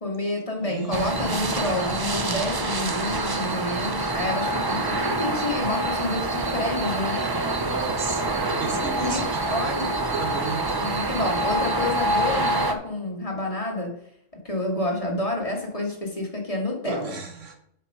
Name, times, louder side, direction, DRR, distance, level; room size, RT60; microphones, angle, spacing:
voice 1, 0.0-7.3 9.0-9.9 10.8-13.9 14.4-17.1, left 2 dB, 25° left, -1 dB, 1.8 m, -29 dB
voice 2, 0.6-1.7 7.6-10.9 16.8-17.6, right 4 dB, 65° right, 5 dB, 1.4 m, -34 dB
sound 1, 0.9-12.7, right 2 dB, 35° right, 0.3 m, -26 dB
7.2 x 6.0 x 5.4 m, 0.72 s
omnidirectional pair, 1.4 m